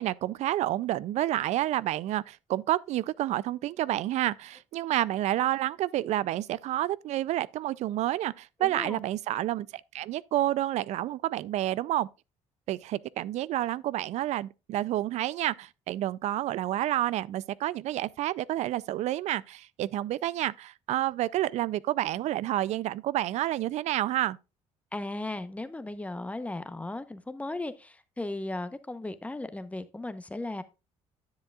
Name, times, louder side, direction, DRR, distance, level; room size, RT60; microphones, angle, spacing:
voice 1, 0.0-9.7 9.9-12.1 12.7-24.4, right 14 dB, 70° right, 0.4 m, -29 dB
voice 2, 8.6-9.0 24.9-30.6, left 2 dB, 10° left, 0.8 m, -36 dB
10.5 x 7.3 x 2.4 m
cardioid pair, 95°, 12 cm